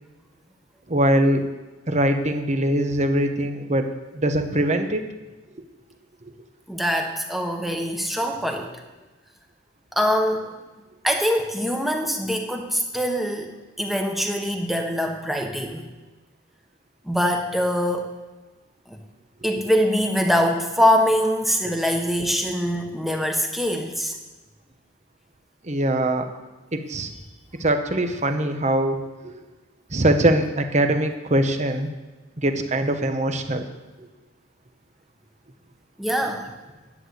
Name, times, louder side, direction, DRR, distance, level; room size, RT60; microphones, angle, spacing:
voice 1, 0.9-1.4 1.9-3.9 4.1-5.1 25.6-26.3 26.7-27.1 27.6-29.0 29.2-29.4 29.9-31.9 32.4-33.6, right 1 dB, 35° right, 7 dB, 1.0 m, -22 dB
voice 2, 6.7-8.7 9.9-10.6 11.0-15.8 17.0-18.1 18.9-19.0 19.4-24.1 36.0-36.5, equal, ahead, 2 dB, 1.2 m, -23 dB
11.0 x 8.1 x 8.0 m, 1.2 s
head